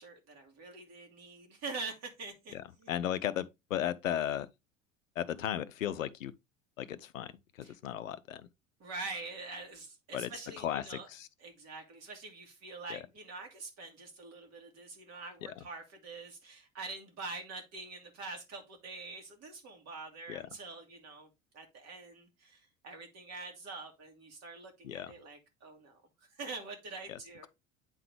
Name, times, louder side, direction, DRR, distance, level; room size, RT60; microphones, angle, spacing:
voice 1, 0.0-2.9 7.6-7.8 8.8-11.1 11.4-21.3 21.5-26.0 26.3-27.5, right 3 dB, 40° right, 1.9 m, -45 dB
voice 2, 2.9-4.5 5.2-6.3 6.8-8.5 10.1-10.3 10.6-11.3 12.9-13.0 20.3-20.5 24.8-25.1 27.1-27.2, left 11 dB, 80° left, 0.6 m, -35 dB
8.8 x 3.8 x 3.3 m
figure-of-eight pair, 70°, 39 cm